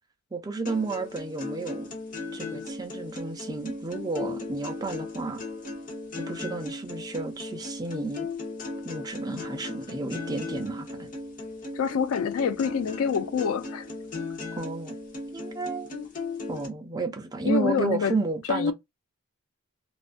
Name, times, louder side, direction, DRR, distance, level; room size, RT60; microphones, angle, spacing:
voice 1, 0.3-1.9 2.3-5.4 6.2-8.3 8.8-11.1 14.6-14.9 15.3-15.9 16.5-18.7, right 3 dB, 20° right, 0.4 m, -32 dB
sound 1, 0.7-16.7, left 3 dB, 40° left, 0.8 m, -37 dB
voice 2, 11.7-13.9 17.5-18.2 18.5-18.7, left 6 dB, 75° left, 0.3 m, -26 dB
2.4 x 2.3 x 2.4 m
head